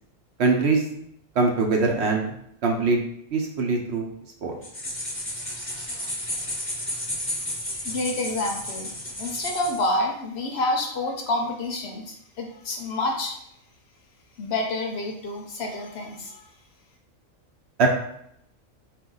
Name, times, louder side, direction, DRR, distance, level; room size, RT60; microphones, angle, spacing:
voice 1, 0.4-0.8 1.4-2.3 2.6-3.0 3.3-4.1 4.4-4.5 17.8-17.9, right 3 dB, 65° right, 2 dB, 0.8 m, -22 dB
sound 1, 4.6-9.9, left 1 dB, 10° left, 0.9 m, -32 dB
voice 2, 6.0-8.9 9.2-13.4 14.4-16.5, left 2 dB, 65° left, 2 dB, 0.7 m, -29 dB
4.1 x 2.5 x 3.8 m, 0.74 s
omnidirectional pair, 1.4 m